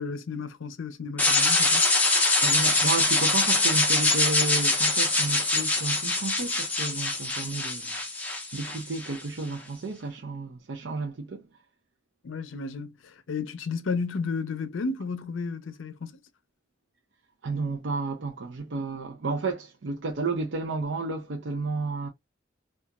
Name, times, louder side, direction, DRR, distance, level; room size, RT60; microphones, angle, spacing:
voice 1, 0.0-1.9 12.2-16.2, left 4 dB, 75° left, 0.5 m, -33 dB
sound 1, 1.2-9.2, left 2 dB, 10° left, 0.5 m, -24 dB
voice 2, 2.4-7.9 8.2-11.5 17.4-22.1, right 3 dB, 60° right, 0.5 m, -32 dB
2.8 x 2.3 x 2.3 m
head